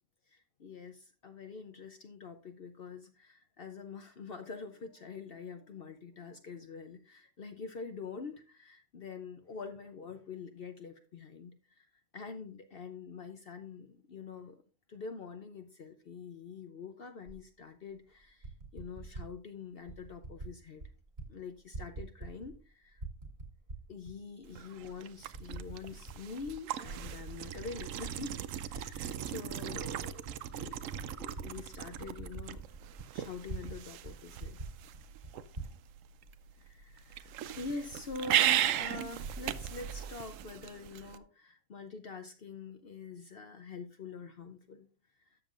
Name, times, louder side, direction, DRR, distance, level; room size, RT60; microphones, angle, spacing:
voice 1, 0.3-11.8 12.1-14.6 14.9-20.9 21.3-23.0 23.9-28.4 28.6-30.2 30.5-30.9 31.2-32.6 33.1-34.6 36.6-37.3 37.6-44.9, left 4 dB, 55° left, 7 dB, 0.8 m, -45 dB
Typing, 17.3-17.4 18.2-19.3 19.9-20.5 20.8-21.3 21.6-22.6 22.9-24.1 24.7-24.8 25.3-26.2 26.5-28.8 29.2-33.8 34.0-34.1 34.4-35.7, right 3 dB, 50° right, 2.0 m, -45 dB
sound 1, 24.4-41.2, right 11 dB, 75° right, 0.9 m, -37 dB
12.5 x 7.1 x 2.5 m, 0.35 s
omnidirectional pair, 1.4 m